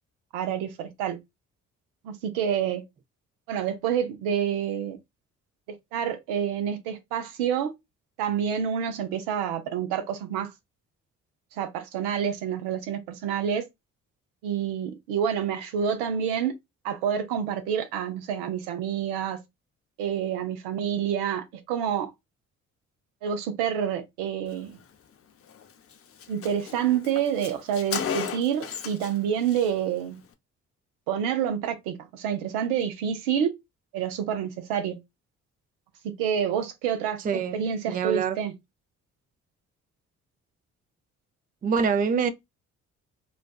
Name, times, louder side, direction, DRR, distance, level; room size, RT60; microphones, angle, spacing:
voice 1, 0.3-1.2 2.0-2.8 3.5-5.0 5.9-7.7 8.2-10.5 11.5-13.6 14.4-16.5 16.8-19.4 20.0-22.1 23.2-24.8 26.3-30.2 31.1-33.5 33.9-35.0 36.2-38.5, right 8 dB, 75° right, 0.7 m, -28 dB
Car, 25.5-25.6 25.9-26.0 26.2-29.2 29.4-29.7, left 7 dB, 35° left, 0.6 m, -34 dB
voice 2, 37.2-37.6 37.9-38.4 41.6-42.3, right 6 dB, 25° right, 0.4 m, -25 dB
2.5 x 2.2 x 2.3 m
hypercardioid pair, 45°, 38 cm